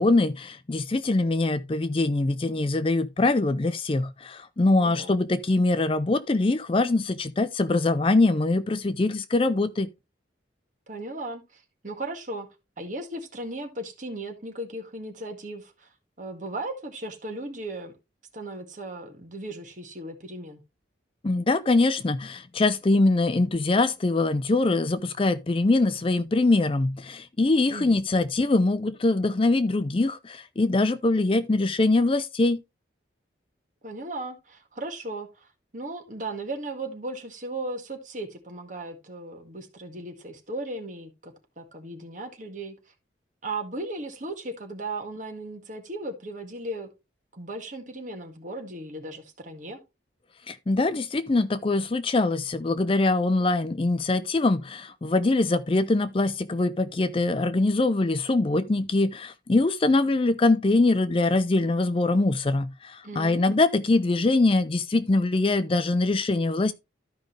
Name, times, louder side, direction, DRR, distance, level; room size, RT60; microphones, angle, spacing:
voice 1, 0.0-9.9 21.2-32.6 50.5-66.7, left 2 dB, 30° left, 0.4 m, -23 dB
voice 2, 4.7-5.2 10.9-12.5 12.8-15.9 16.2-17.9 18.3-20.6 27.7-28.0 33.8-35.5 35.7-42.8 43.4-46.9 47.3-49.8 63.0-63.6, right 2 dB, 40° right, 1.9 m, -36 dB
13.0 x 5.2 x 3.3 m
head